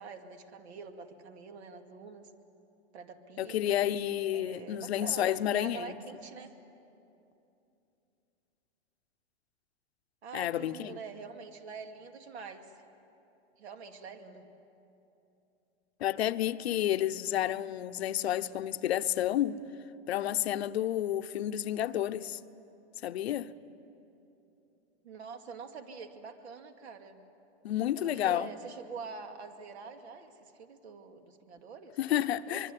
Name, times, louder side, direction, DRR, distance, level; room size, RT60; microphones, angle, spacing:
voice 1, 0.0-2.3 2.9-3.9 4.3-6.6 10.2-12.8 13.6-14.5 25.0-27.2 28.0-32.0 32.5-32.6, right 5 dB, 75° right, 2.5 m, -45 dB
voice 2, 3.4-6.0 10.3-10.9 16.0-19.6 20.1-22.4 23.0-23.5 27.6-28.5 32.0-32.7, left 12 dB, 70° left, 0.9 m, -30 dB
24.5 x 24.0 x 9.9 m
hypercardioid pair, 155°, 33 cm